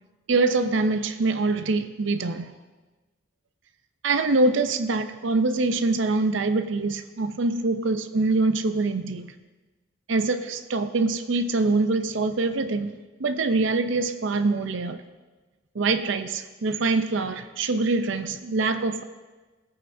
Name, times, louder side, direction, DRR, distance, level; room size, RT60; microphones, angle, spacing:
voice 1, 0.3-2.5 4.0-9.3 10.1-15.0 15.7-19.0, right 3 dB, 65° right, 9 dB, 0.6 m, -24 dB
18.0 x 8.7 x 2.7 m, 1.2 s
head